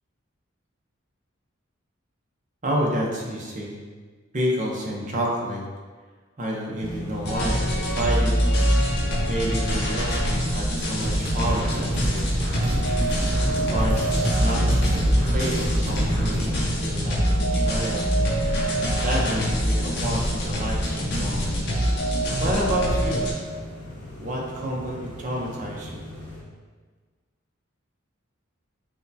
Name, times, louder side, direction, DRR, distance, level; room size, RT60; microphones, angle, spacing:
voice 1, 2.6-3.8 4.3-5.6 6.4-8.3 9.3-12.3 13.4-18.1 19.0-21.6 22.4-23.3 24.2-26.0, equal, 40° right, -2 dB, 0.7 m, -29 dB
sound 1, 6.8-26.4, right 1 dB, 25° left, 0.8 m, -35 dB
sound 2, 7.2-23.3, equal, 55° left, 0.7 m, -24 dB
sound 3, 11.0-16.6, equal, 55° right, 1.1 m, -28 dB
6.2 x 2.2 x 2.7 m, 1.4 s
head